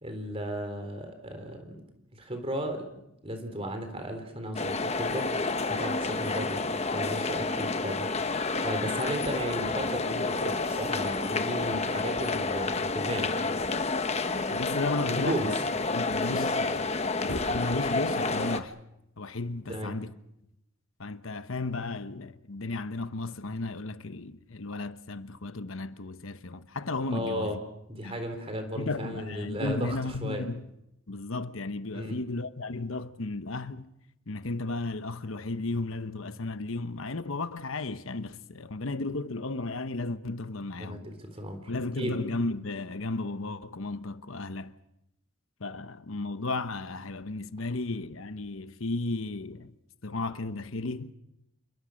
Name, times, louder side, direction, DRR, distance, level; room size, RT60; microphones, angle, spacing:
voice 1, 0.0-1.8 2.1-8.1 8.6-13.5 15.0-15.5 19.7-20.0 27.1-27.6 27.9-30.4 31.9-32.2 40.8-42.2, equal, 25° right, 3.8 m, -35 dB
sound 1, 4.6-18.6, left 3 dB, 30° left, 1.1 m, -29 dB
sound 2, 10.3-11.0 12.4-13.2 14.5-15.9 16.5-16.6 16.9-18.1, left 1 dB, 90° left, 3.8 m, -41 dB
voice 2, 14.5-15.5 15.9-18.8 19.2-20.1 21.0-27.6 28.0-28.2 28.7-30.7 31.1-33.9 34.3-41.1 41.7-44.7 45.6-49.7 50.0-51.1, left 3 dB, 70° left, 1.1 m, -34 dB
28.5 x 22.5 x 6.5 m
head